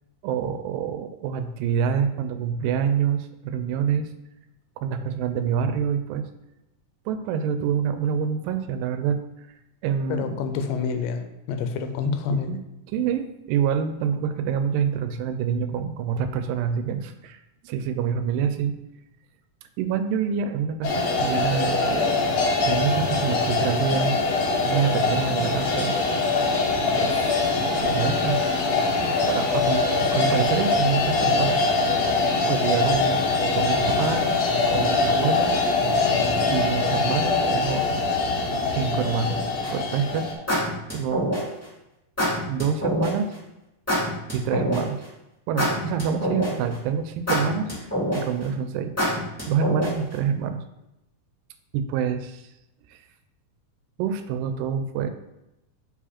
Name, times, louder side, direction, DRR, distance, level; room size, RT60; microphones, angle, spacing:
voice 1, 0.2-4.1 4.8-6.3 7.1-9.2 9.8-10.5 12.3-12.6 12.9-18.8 19.8-22.2 22.6-24.2 24.6-26.0 26.9-27.5 27.8-28.4 29.1-32.0 32.5-34.3 34.7-35.6 35.9-37.9 38.7-39.4 39.7-40.3 40.9-41.3 42.5-43.3 44.3-45.0 45.5-48.9 49.5-50.6 51.7-52.4 52.9-53.0 54.0-55.1, right 7 dB, 90° right, 9 dB, 2.2 m, -27 dB
voice 2, 10.1-12.5, left 5 dB, 85° left, 7 dB, 2.3 m, -27 dB
sound 1, 20.8-40.3, left 3 dB, 65° left, 1.9 m, -23 dB
sound 2, 39.6-39.9 40.5-41.6 42.2-43.1 43.9-45.0 45.6-46.7 47.3-48.4 49.0-50.1, equal, 5° left, 1.6 m, -25 dB
5.2 x 5.0 x 4.2 m, 0.91 s
omnidirectional pair, 3.9 m